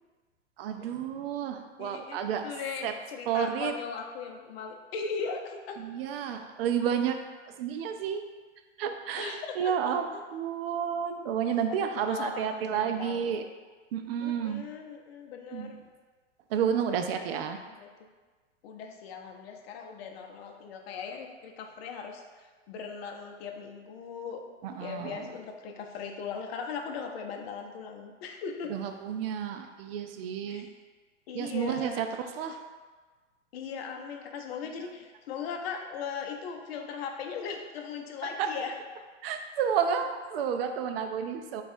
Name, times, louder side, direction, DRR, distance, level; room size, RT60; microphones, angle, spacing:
voice 1, 0.6-2.5 2.8-2.9 3.3-3.7 5.8-7.2 7.6-8.2 8.8-13.4 13.9-14.6 15.5-15.7 16.5-17.6 24.6-25.2 28.7-30.7 31.3-32.6 38.4-38.5 39.2-41.6, right 8 dB, 55° right, 7 dB, 0.4 m, -31 dB
voice 2, 1.8-5.8 9.2-9.7 11.7-13.3 14.2-15.8 17.3-17.4 17.7-17.9 18.6-24.4 24.8-28.7 30.5-30.6 31.3-32.1 33.5-38.7, left 6 dB, 55° left, 3 dB, 0.6 m, -39 dB
3.4 x 2.4 x 4.1 m, 1.4 s
hypercardioid pair, 130°, 37 cm